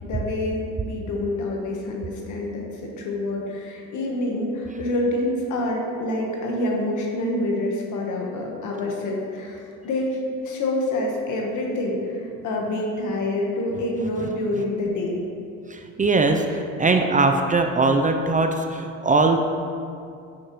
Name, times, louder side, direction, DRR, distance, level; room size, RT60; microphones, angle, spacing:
voice 1, 0.0-9.6 9.8-15.2, left 1 dB, 80° left, -1 dB, 1.3 m, -27 dB
voice 2, 15.7-19.4, right 3 dB, 25° right, 5 dB, 0.5 m, -21 dB
9.4 x 6.4 x 3.1 m, 2.4 s
cardioid pair, 90°, 30 cm